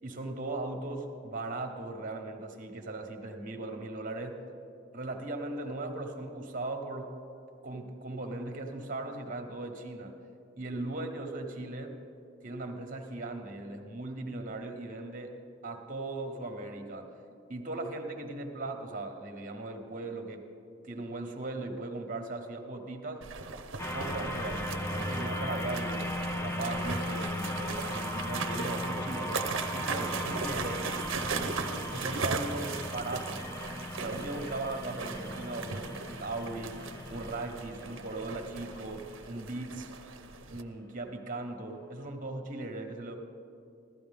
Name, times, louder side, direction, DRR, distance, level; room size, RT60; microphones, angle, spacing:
voice 1, 0.0-4.4 4.9-7.2 7.6-10.2 10.6-12.0 12.4-15.4 15.6-17.1 17.5-20.5 20.8-23.3 23.9-30.9 31.9-33.5 34.0-36.8 37.1-39.9 40.5-43.2, right 2 dB, 45° right, 4 dB, 1.2 m, -38 dB
sound 1, 23.2-40.6, right 5 dB, 80° right, 0.7 m, -39 dB
sound 2, 23.8-40.3, left 1 dB, 10° left, 0.5 m, -37 dB
15.5 x 13.0 x 3.6 m, 2.5 s
head